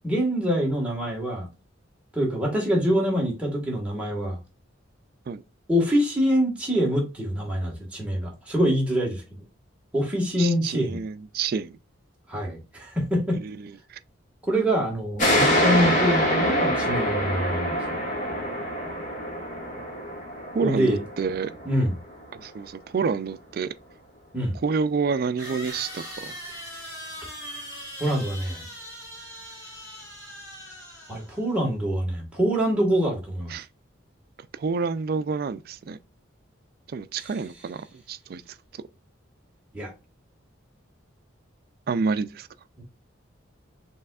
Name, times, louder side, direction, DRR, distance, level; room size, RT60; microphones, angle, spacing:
voice 1, 0.0-1.5 2.1-4.4 5.7-9.2 9.9-11.0 12.3-13.4 14.4-18.0 20.6-21.0 21.6-22.0 24.3-24.6 28.0-28.6 31.1-33.5 37.2-37.3 39.7-39.9 42.8-42.9, equal, 5° right, 1.5 m, -25 dB
voice 2, 10.4-11.7 13.4-14.0 20.5-21.6 22.4-23.7 24.6-26.3 33.5-33.7 34.5-36.0 36.9-38.6 41.9-42.5, right 5 dB, 50° right, 0.3 m, -28 dB
sound 1, 15.2-22.4, equal, 40° left, 1.7 m, -25 dB
sound 2, 25.4-31.5, equal, 15° left, 2.4 m, -40 dB
5.4 x 3.5 x 2.3 m
head